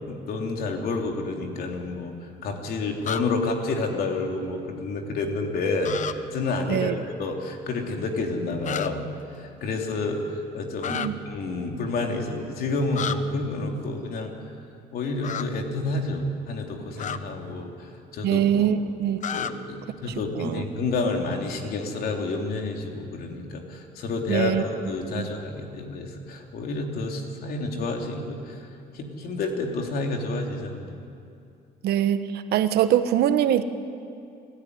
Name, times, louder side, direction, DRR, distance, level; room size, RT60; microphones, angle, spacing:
voice 1, 0.0-6.0 6.3-9.1 9.4-14.3 14.9-18.7 19.3-28.7 28.9-30.9, left 3 dB, 65° left, 2 dB, 3.4 m, -29 dB
sound 1, 3.0-3.2 5.8-6.1 8.6-8.9 10.8-11.1 12.9-13.2 15.2-15.4 17.0-17.2 19.2-19.5, left 8 dB, 45° left, 0.9 m, -30 dB
voice 2, 18.2-19.2 20.4-20.6 24.3-24.6 25.1-25.2 31.8-33.6, right 10 dB, 70° right, 10 dB, 1.2 m, -23 dB
29.5 x 13.5 x 9.8 m, 2.5 s
cardioid pair, 110°, 17 cm